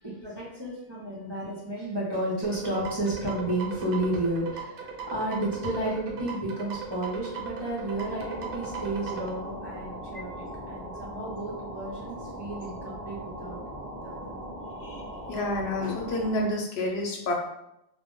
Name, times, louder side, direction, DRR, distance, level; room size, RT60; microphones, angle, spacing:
voice 1, 0.0-13.6 14.0-14.3, right 1 dB, 30° right, -7 dB, 0.6 m, -32 dB
sound 1, 2.4-9.3, right 5 dB, 65° right, 0.7 m, -38 dB
sound 2, 7.7-16.6, equal, 45° left, 0.7 m, -40 dB
voice 2, 15.3-17.3, left 1 dB, 85° left, 0 dB, 0.9 m, -29 dB
2.2 x 2.0 x 3.6 m, 0.84 s
omnidirectional pair, 1.0 m